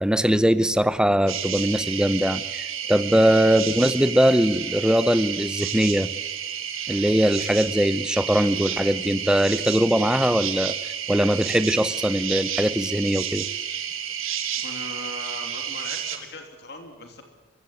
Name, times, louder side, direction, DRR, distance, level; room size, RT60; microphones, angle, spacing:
voice 1, 0.0-6.1 6.9-13.5, equal, 5° right, 14 dB, 0.7 m, -21 dB
sound 1, 1.3-16.2, right 9 dB, 85° right, 3.0 m, -31 dB
voice 2, 14.6-17.2, left 2 dB, 55° left, 4 dB, 2.9 m, -39 dB
23.0 x 16.0 x 9.5 m, 1.3 s
head